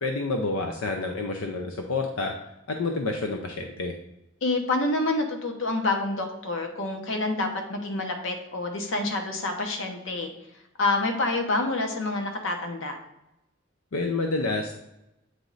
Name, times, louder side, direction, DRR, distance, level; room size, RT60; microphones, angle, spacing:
voice 1, 0.0-2.3 2.7-3.9 13.9-14.7, left 3 dB, 90° left, 3 dB, 0.5 m, -28 dB
voice 2, 4.4-10.3 10.8-13.0, left 2 dB, 65° left, 4 dB, 0.9 m, -27 dB
8.0 x 3.1 x 3.8 m, 0.88 s
head